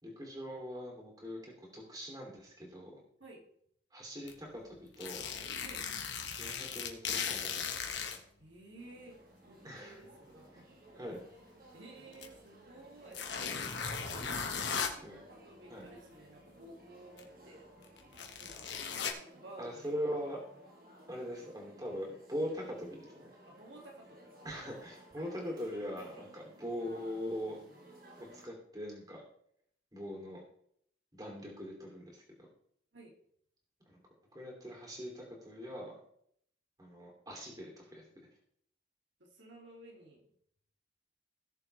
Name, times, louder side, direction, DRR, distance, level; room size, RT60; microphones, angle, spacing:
voice 1, 0.0-3.0 3.9-5.2 6.4-8.1 9.6-10.1 10.5-10.6 10.9-11.2 15.0-15.2 15.7-15.9 19.0-19.2 19.6-20.4 21.1-23.3 24.4-27.6 28.2-29.2 29.9-30.4 31.1-32.2 33.9-34.0 34.3-35.9 36.8-38.3, equal, 20° right, -1 dB, 3.0 m, -42 dB
sound 1, 4.3-4.4 4.9-8.2 9.1-9.2 12.1-12.3 13.1-14.9 17.2-17.3 17.8-19.1, left 6 dB, 75° left, 1.5 m, -37 dB
voice 2, 8.4-9.2 9.5-11.0 11.7-13.3 14.6-17.8 18.4-18.7 19.2-20.2 21.3-21.5 23.5-24.4 25.2-25.3 32.9-33.2 39.2-40.3, right 2 dB, 80° right, -1 dB, 2.6 m, -54 dB
sound 2, 8.8-28.5, right 1 dB, 50° right, 1.8 m, -58 dB
17.5 x 7.0 x 3.4 m, 0.69 s
head